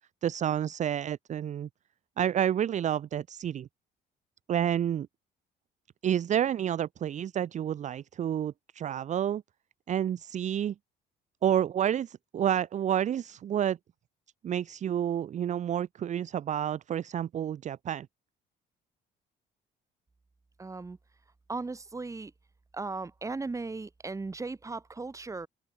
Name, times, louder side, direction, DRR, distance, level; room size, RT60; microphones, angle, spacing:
voice 1, 0.2-1.7 2.2-3.7 4.5-5.1 6.0-9.4 9.9-10.7 11.4-13.8 14.4-18.1, right 10 dB, 45° right, 0.8 m, -29 dB
voice 2, 20.6-21.0 21.5-22.3 22.7-25.5, right 3 dB, 20° right, 3.0 m, -37 dB
open air
cardioid pair, 110°, 17 cm